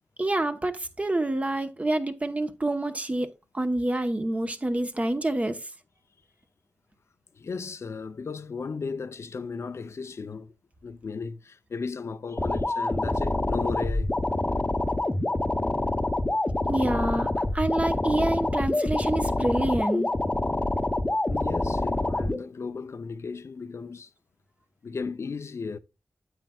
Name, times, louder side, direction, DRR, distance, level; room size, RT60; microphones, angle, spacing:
voice 1, 0.2-5.7 16.7-20.1, right 1 dB, 25° right, 1.0 m, -27 dB
voice 2, 7.3-10.5 10.8-14.1 21.3-24.1 24.8-25.8, left 5 dB, 65° left, 0.6 m, -35 dB
sound 1, 12.4-22.4, left 2 dB, 25° left, 0.9 m, -26 dB
9.3 x 7.5 x 2.3 m
cardioid pair, 60°, 5 cm